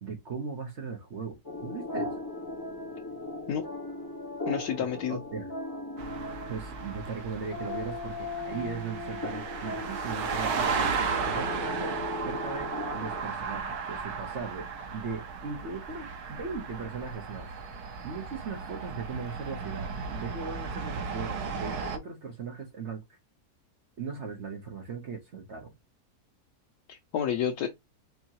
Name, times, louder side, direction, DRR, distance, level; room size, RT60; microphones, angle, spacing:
voice 1, 0.0-2.1 5.1-5.5 6.5-10.9 11.2-12.0 12.2-14.7 14.9-17.5 18.0-23.2 24.0-25.7, right 5 dB, 50° right, 1.1 m, -38 dB
sound 1, 1.4-13.2, left 2 dB, 15° left, 1.0 m, -38 dB
voice 2, 4.5-5.2 26.9-27.7, left 8 dB, 85° left, 1.1 m, -30 dB
sound 2, 6.0-22.0, right 5 dB, 85° right, 1.4 m, -35 dB
4.6 x 2.8 x 2.8 m
omnidirectional pair, 1.6 m